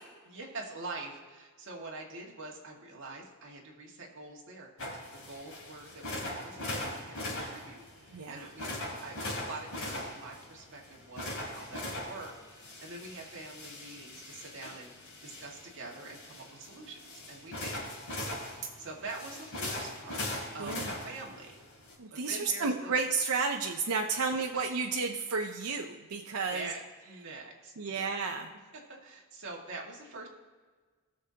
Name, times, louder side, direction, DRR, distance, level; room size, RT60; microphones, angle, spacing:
voice 1, 0.2-8.8 9.0-17.0 17.3-17.9 18.8-20.2 20.5-21.6 22.1-22.9 24.1-24.2 26.2-28.1 28.7-30.3, right 3 dB, 60° right, -1 dB, 1.9 m, -45 dB
sound 1, 4.8-21.9, left 1 dB, 70° left, 3.3 m, -40 dB
voice 2, 8.1-8.5 20.6-20.9 22.0-26.7 27.8-28.5, right 4 dB, 80° right, 3 dB, 0.7 m, -32 dB
19.0 x 6.5 x 2.9 m, 1.5 s
head